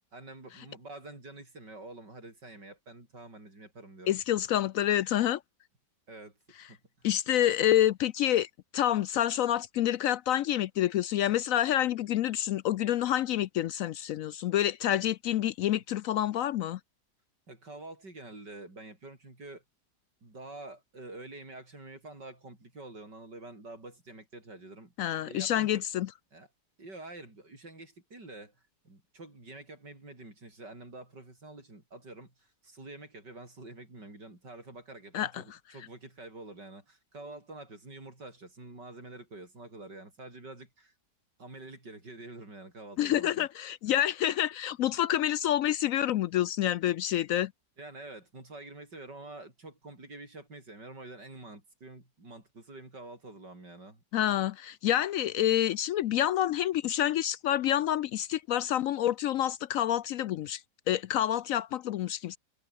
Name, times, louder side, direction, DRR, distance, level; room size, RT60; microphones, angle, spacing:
voice 1, 0.1-4.2 6.1-6.4 6.7-7.1 17.5-19.6 20.2-24.9 25.2-25.8 26.3-26.5 26.8-28.6 28.8-40.9 41.4-43.5 43.9-44.0 47.8-54.0, right 2 dB, 90° right, 7.8 m, -47 dB
voice 2, 4.1-5.4 7.0-16.8 25.0-26.1 35.1-35.4 43.0-47.5 54.1-60.6 60.9-62.4, left 12 dB, 70° left, 0.8 m, -28 dB
omnidirectional pair, 1.8 m